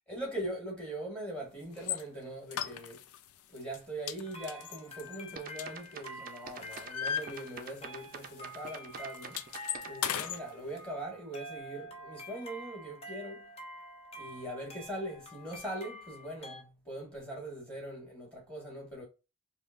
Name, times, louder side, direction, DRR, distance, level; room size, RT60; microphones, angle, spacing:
voice 1, 0.1-3.0 3.5-9.4 9.8-13.5 14.1-19.0, right 1 dB, 5° left, 1.5 m, -41 dB
sound 1, 1.8-2.0 2.5-3.2 3.6-3.8 4.1-6.1 6.5-7.9 8.2-8.4 8.7-10.4, left 9 dB, 80° left, 0.4 m, -37 dB
sound 2, 4.2-16.6, equal, 25° left, 0.7 m, -48 dB
sound 3, 5.4-10.3, right 6 dB, 40° right, 0.4 m, -46 dB
5.0 x 2.2 x 2.5 m
head